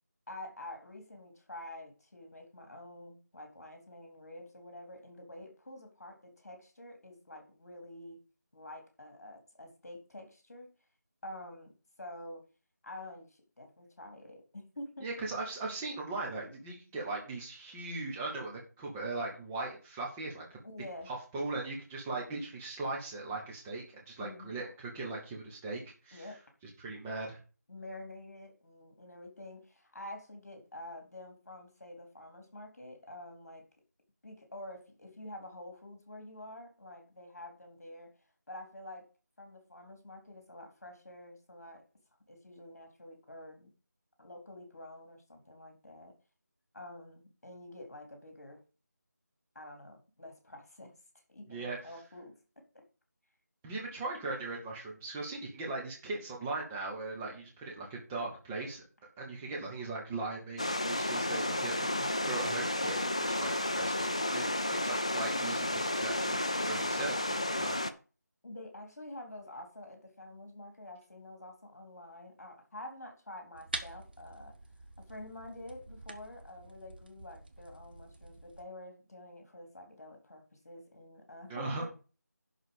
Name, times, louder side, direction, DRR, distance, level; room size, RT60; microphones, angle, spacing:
voice 1, 0.3-8.2 8.5-10.7 11.2-11.7 12.0-12.4 12.8-15.1 20.6-21.1 24.2-24.6 26.1-26.4 27.7-33.6 34.2-38.1 38.5-39.0 39.4-41.8 42.3-43.7 44.2-46.1 46.7-48.6 49.5-50.9 51.3-52.8 68.4-74.5 75.0-81.9, left 1 dB, 55° left, 4 dB, 3.9 m, -48 dB
voice 2, 15.0-20.6 21.1-26.3 26.8-27.4 51.5-51.8 53.6-58.8 59.2-67.8 81.5-81.9, right 3 dB, 5° right, -2 dB, 0.7 m, -39 dB
sound 1, 60.6-67.9, left 1 dB, 20° left, 0.4 m, -32 dB
sound 2, 73.5-78.6, right 3 dB, 30° right, 1.0 m, -46 dB
11.0 x 4.1 x 7.0 m, 0.34 s
figure-of-eight pair, 170°, 10 cm